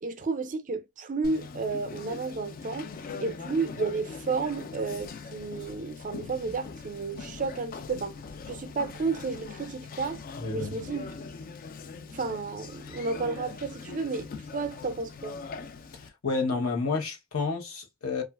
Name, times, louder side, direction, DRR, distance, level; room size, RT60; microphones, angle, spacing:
voice 1, 0.0-2.9 3.2-8.2 8.5-10.2 10.5-11.0 12.1-15.4, right 4 dB, 40° right, 0.5 m, -32 dB
Conversation, 1.2-16.1, left 4 dB, 40° left, 0.3 m, -42 dB
voice 2, 10.4-10.7 15.9-18.2, left 4 dB, 85° left, 0.9 m, -30 dB
2.9 x 2.4 x 2.2 m
head